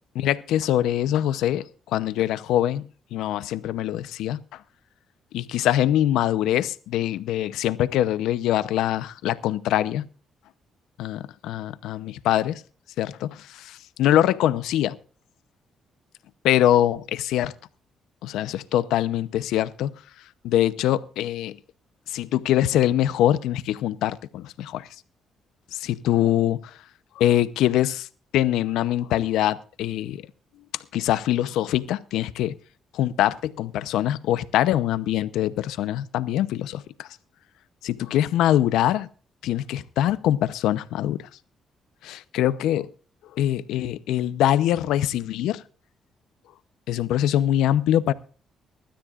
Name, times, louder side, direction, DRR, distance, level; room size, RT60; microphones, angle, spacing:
voice 1, 0.2-4.4 5.3-10.0 11.0-12.6 13.0-15.0 16.4-17.5 18.2-19.9 20.4-21.6 22.1-24.9 25.7-26.6 27.2-28.1 28.3-30.2 30.9-32.5 32.9-37.1 37.8-39.1 39.4-41.2 42.0-42.9 43.3-45.6 46.9-48.1, left 12 dB, 90° left, 0.8 m, -23 dB
23.5 x 13.0 x 2.5 m
cardioid pair, 90°, 0 cm